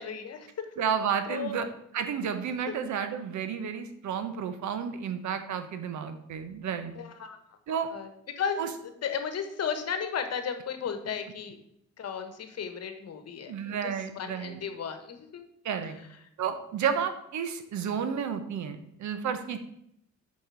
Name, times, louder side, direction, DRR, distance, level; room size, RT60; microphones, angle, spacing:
voice 1, 0.0-0.7 1.3-1.6 6.9-7.4 7.9-8.1 8.3-8.6 9.0-11.6 12.0-15.4 15.8-15.9, left 7 dB, 55° left, 8 dB, 1.3 m, -34 dB
voice 2, 0.8-1.7 1.9-6.9 7.7-7.9 8.6-8.7 13.5-14.6 15.6-16.0 16.4-19.6, right 7 dB, 70° right, 9 dB, 1.1 m, -31 dB
6.6 x 5.3 x 6.2 m, 0.76 s
cardioid pair, 90°, 30 cm